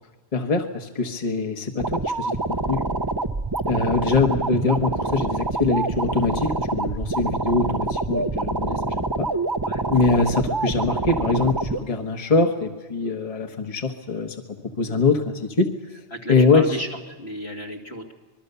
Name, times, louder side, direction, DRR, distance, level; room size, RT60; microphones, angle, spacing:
voice 1, 0.3-2.8 3.6-9.3 9.9-14.4 14.8-15.7 16.3-16.7, left 4 dB, 35° left, 4 dB, 1.3 m, -23 dB
sound 1, 1.8-11.8, right 2 dB, 25° right, 0.7 m, -26 dB
voice 2, 16.1-18.1, right 1 dB, 70° left, 1 dB, 2.8 m, -34 dB
25.5 x 21.5 x 6.9 m, 1.2 s
omnidirectional pair, 1.1 m